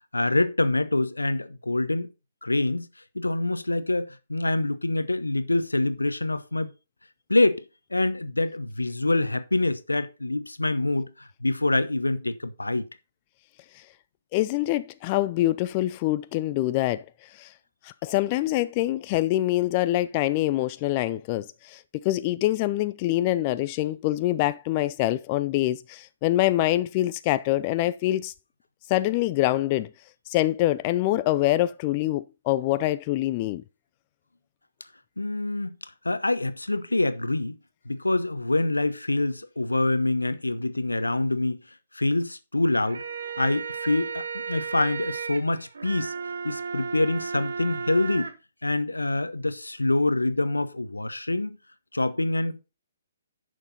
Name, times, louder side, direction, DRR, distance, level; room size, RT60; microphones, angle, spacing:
voice 1, 0.1-2.1 2.4-2.9 3.1-6.7 7.3-7.6 7.9-12.8 35.2-35.8 36.0-37.6 37.9-41.6 41.9-43.0 43.4-46.1 46.4-48.3 48.6-51.6 51.9-52.6, left 2 dB, 85° left, 0.9 m, -25 dB
voice 2, 14.3-17.0 17.3-17.5 17.8-28.3 28.9-29.9 30.3-33.6, left 15 dB, 30° left, 0.4 m, -25 dB
sound 1, 42.7-48.3, right 6 dB, 65° right, 1.3 m, -34 dB
10.5 x 6.5 x 4.1 m
figure-of-eight pair, 130°, 0 cm